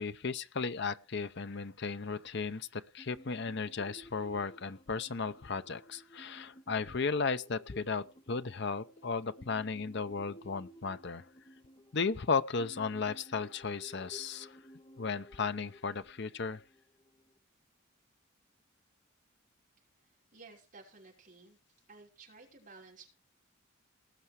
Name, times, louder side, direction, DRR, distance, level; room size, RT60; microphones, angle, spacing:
voice 1, 0.0-11.2 11.9-14.6 15.0-16.6, left 4 dB, 55° left, 0.7 m, -35 dB
sound 1, 3.0-17.4, equal, 25° left, 1.2 m, -56 dB
voice 2, 20.0-21.6 21.9-23.1, right 3 dB, 40° right, 5.9 m, -55 dB
19.5 x 7.0 x 4.8 m
head